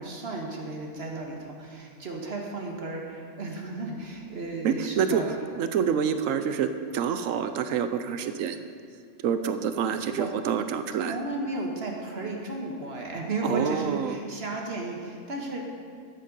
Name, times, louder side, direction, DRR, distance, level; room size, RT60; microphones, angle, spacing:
voice 1, 0.0-5.5 9.8-10.3 11.1-15.6, right 2 dB, 50° right, 0 dB, 1.5 m, -34 dB
voice 2, 4.6-5.2 5.6-8.6 9.2-11.2 13.4-14.1, right 7 dB, 80° right, 9 dB, 1.0 m, -27 dB
12.5 x 7.5 x 5.4 m, 2.2 s
omnidirectional pair, 1.4 m